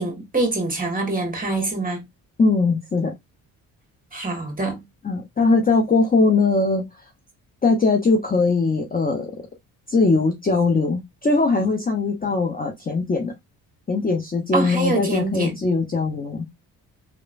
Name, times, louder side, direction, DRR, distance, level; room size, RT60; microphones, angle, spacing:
voice 1, 0.0-2.0 4.1-4.8 14.5-15.5, right 2 dB, 20° right, 1.4 m, -25 dB
voice 2, 2.4-3.1 5.0-6.8 7.6-9.3 9.9-13.3 13.9-16.4, left 3 dB, 20° left, 0.7 m, -20 dB
3.0 x 2.1 x 2.5 m
hypercardioid pair, 50°, 42 cm